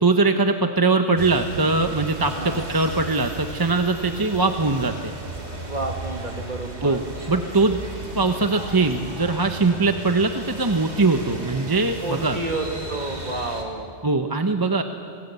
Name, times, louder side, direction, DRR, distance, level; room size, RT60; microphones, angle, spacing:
voice 1, 0.0-5.1 6.8-7.0 7.3-7.8 8.1-12.4 14.0-14.8, right 3 dB, 20° right, 6 dB, 0.9 m, -21 dB
sound 1, 1.2-13.6, right 1 dB, 70° right, 3.2 m, -35 dB
voice 2, 5.7-7.0 12.0-13.9, right 2 dB, 45° right, 2 dB, 2.5 m, -30 dB
26.0 x 18.5 x 8.1 m, 2.3 s
omnidirectional pair, 1.2 m